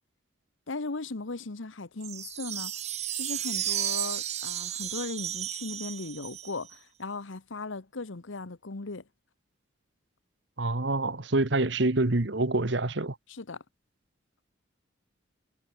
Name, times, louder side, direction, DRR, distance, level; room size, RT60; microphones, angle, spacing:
voice 1, 0.7-2.7 3.1-9.0 13.3-13.6, left 3 dB, 80° left, 1.1 m, -37 dB
sound 1, 2.0-6.7, right 11 dB, 35° right, 0.7 m, -33 dB
voice 2, 10.6-13.2, right 2 dB, 65° right, 1.4 m, -26 dB
head